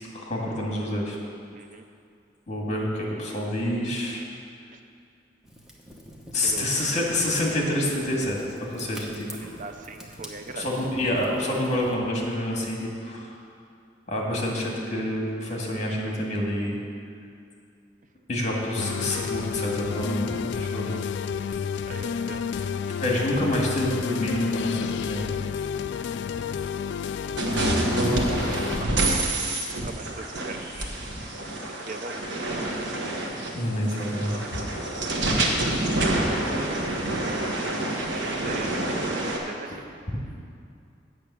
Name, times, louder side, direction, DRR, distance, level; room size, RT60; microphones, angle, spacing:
voice 1, 0.1-1.2 2.5-4.2 6.3-9.5 10.6-13.4 14.1-16.8 18.3-20.9 23.0-25.2 33.5-34.6, left 1 dB, 40° left, -2 dB, 1.9 m, -27 dB
voice 2, 1.5-1.9 4.7-4.8 6.4-6.9 9.4-10.9 20.7-21.0 21.9-22.4 28.8-28.9 29.7-30.6 31.7-32.2 35.4-35.7 36.3-36.4 38.2-39.8, right 3 dB, 45° right, 7 dB, 0.5 m, -40 dB
Fire, 5.4-12.0, equal, 5° right, 1.0 m, -45 dB
sound 1, 18.8-28.9, left 7 dB, 65° left, 0.3 m, -30 dB
sound 2, 27.4-39.4, right 1 dB, 80° right, 1.3 m, -27 dB
8.7 x 6.3 x 8.1 m, 2.4 s
head